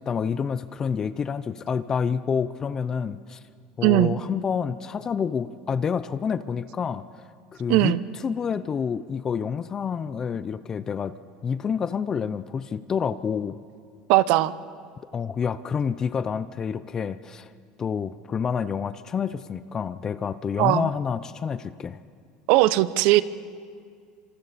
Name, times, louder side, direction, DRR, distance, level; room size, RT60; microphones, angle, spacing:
voice 1, 0.0-3.4 3.8-7.2 7.5-11.1 11.4-13.6 15.1-17.5 17.8-22.0, left 6 dB, 25° left, 14 dB, 0.6 m, -28 dB
voice 2, 3.8-4.2 7.7-8.0 14.1-14.5 20.6-20.9 22.5-23.2, right 16 dB, 65° right, 16 dB, 0.7 m, -19 dB
26.5 x 26.0 x 4.2 m, 2.1 s
supercardioid pair, 130°, 2 cm